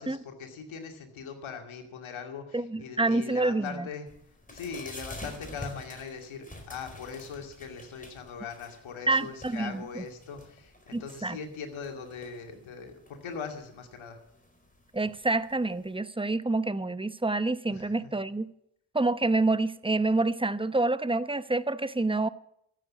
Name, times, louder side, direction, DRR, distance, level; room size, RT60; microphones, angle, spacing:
voice 1, 0.0-4.1 4.5-14.2 17.7-18.2, left 6 dB, 75° left, 2.5 m, -41 dB
voice 2, 2.5-3.9 9.1-10.0 10.9-11.4 14.9-18.5 18.9-22.3, right 2 dB, 10° right, 0.8 m, -27 dB
sound 1, 4.1-15.9, left 1 dB, 15° left, 4.6 m, -48 dB
14.0 x 8.3 x 8.3 m
supercardioid pair, 40°, 48 cm